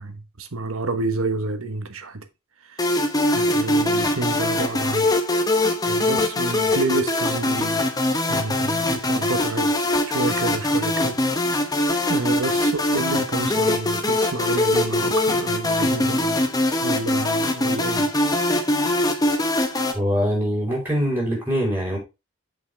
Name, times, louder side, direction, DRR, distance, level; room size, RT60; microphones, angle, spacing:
voice 1, 0.0-2.3 2.6-3.0 3.3-5.1 5.9-7.9 8.3-9.7 10.1-11.2 11.5-11.7 12.1-16.5 16.8-18.1, right 3 dB, 75° right, 1.1 m, -29 dB
sound 1, 2.8-19.9, left 1 dB, 15° left, 1.0 m, -22 dB
voice 2, 19.9-22.0, equal, 10° right, 4.5 m, -23 dB
7.5 x 5.8 x 3.3 m
head